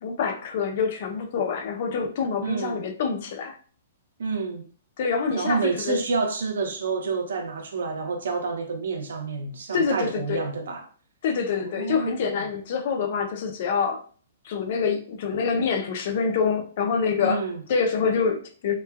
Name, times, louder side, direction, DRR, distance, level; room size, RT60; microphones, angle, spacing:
voice 1, 0.0-3.6 5.0-6.0 9.7-10.5 11.2-14.0 14.4-18.8, left 5 dB, 45° left, 0.4 m, -26 dB
voice 2, 2.4-2.8 4.2-4.6 5.3-10.8 11.6-12.4 17.2-17.6, right 4 dB, 80° right, 0.6 m, -28 dB
3.0 x 2.2 x 2.3 m
hypercardioid pair, 165°, 0 cm